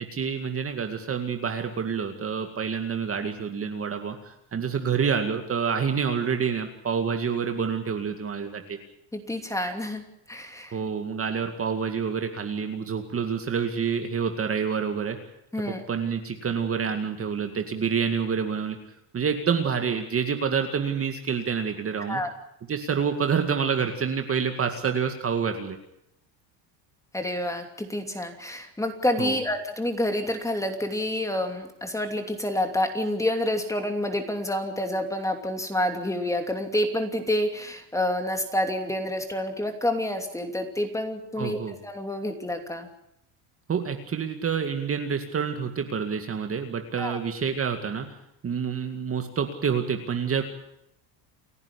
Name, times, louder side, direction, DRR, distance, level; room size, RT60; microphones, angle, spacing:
voice 1, 0.0-8.8 10.7-15.2 15.7-18.8 19.1-22.2 22.7-25.8 29.2-29.4 41.4-41.8 43.7-48.1 48.4-50.4, right 6 dB, 25° right, 6 dB, 2.1 m, -28 dB
voice 2, 9.1-10.8 15.5-15.8 22.1-22.3 27.1-42.9 47.0-47.2, left 1 dB, 5° left, 5 dB, 2.9 m, -28 dB
29.0 x 11.0 x 10.0 m, 0.78 s
cardioid pair, 130°, 49 cm